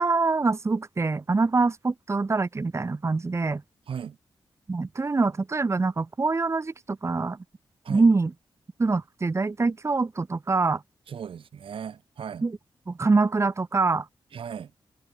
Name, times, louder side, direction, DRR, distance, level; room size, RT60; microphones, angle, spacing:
voice 1, 0.0-3.6 4.7-7.4 7.9-8.3 8.8-10.8 12.4-12.6 12.9-14.0, right 3 dB, 30° right, 1.7 m, -24 dB
voice 2, 3.9-4.2 7.8-8.1 11.1-12.5 14.3-14.7, right 7 dB, 75° right, 4.0 m, -36 dB
wide cardioid pair, 95°, 9 cm